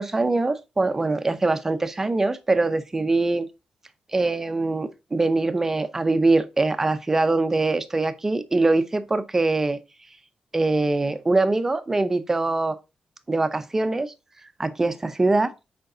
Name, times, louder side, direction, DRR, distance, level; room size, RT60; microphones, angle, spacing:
voice 1, 0.0-3.5 4.1-9.8 10.5-12.8 13.3-14.1 14.6-15.5, right 2 dB, 15° right, 0.6 m, -23 dB
8.0 x 5.1 x 3.8 m
wide cardioid pair, 180°, 2 cm